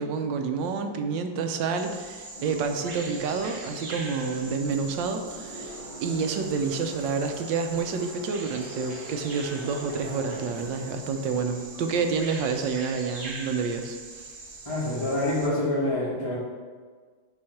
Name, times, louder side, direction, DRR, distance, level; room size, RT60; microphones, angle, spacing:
voice 1, 0.0-14.3, right 5 dB, 75° right, 6 dB, 1.3 m, -29 dB
Bird vocalization bird call bird song, 1.8-15.5, right 3 dB, 60° right, 0.5 m, -42 dB
sound 1, 2.3-12.3, equal, 35° left, 0.5 m, -44 dB
voice 2, 14.6-16.4, left 1 dB, 15° left, -9 dB, 1.2 m, -26 dB
8.0 x 3.1 x 5.7 m, 1.5 s
omnidirectional pair, 2.1 m